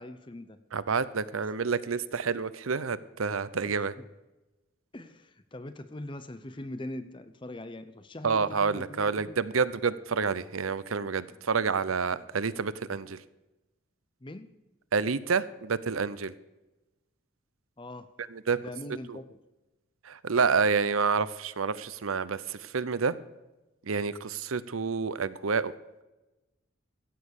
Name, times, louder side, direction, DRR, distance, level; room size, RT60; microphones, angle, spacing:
voice 1, 0.0-0.6 3.6-4.1 4.9-9.4 11.3-11.4 12.1-12.3 14.2-14.5 17.8-18.1 18.6-19.4, left 1 dB, 25° left, 11 dB, 0.6 m, -42 dB
voice 2, 0.7-3.9 8.2-13.2 14.9-16.3 18.3-18.6 19.1-19.2 20.0-23.1 23.9-25.7, right 5 dB, 90° right, 16 dB, 0.7 m, -28 dB
16.0 x 7.4 x 6.7 m, 1.0 s
head